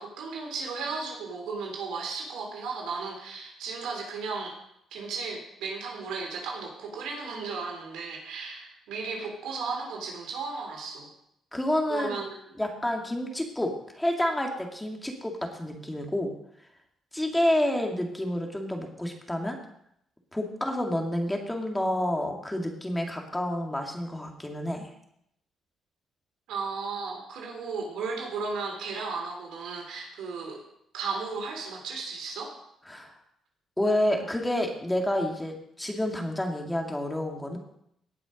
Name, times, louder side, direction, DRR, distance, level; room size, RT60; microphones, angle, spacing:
voice 1, 0.0-4.6 4.9-11.1 11.9-12.4 26.5-30.6 30.9-32.5, right 4 dB, 85° right, 0 dB, 3.7 m, -35 dB
voice 2, 11.5-12.2 12.6-16.3 17.1-19.6 20.3-24.9 32.9-33.1 33.8-37.6, left 1 dB, 10° left, 2 dB, 2.2 m, -29 dB
18.0 x 6.1 x 5.2 m, 0.74 s
cardioid pair, 90°, 0 cm